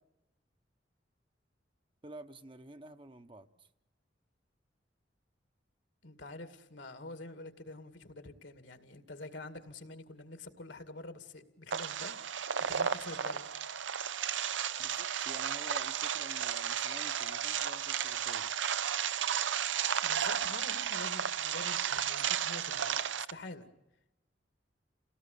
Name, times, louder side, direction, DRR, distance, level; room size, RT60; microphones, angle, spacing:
voice 1, 2.0-3.7 14.8-18.5, right 1 dB, 30° right, 8 dB, 1.0 m, -50 dB
voice 2, 6.0-13.5 20.0-23.7, left 2 dB, 70° left, 10 dB, 2.2 m, -47 dB
sound 1, 11.7-23.3, right 8 dB, 90° right, 0.8 m, -33 dB
29.0 x 18.0 x 8.4 m, 0.96 s
head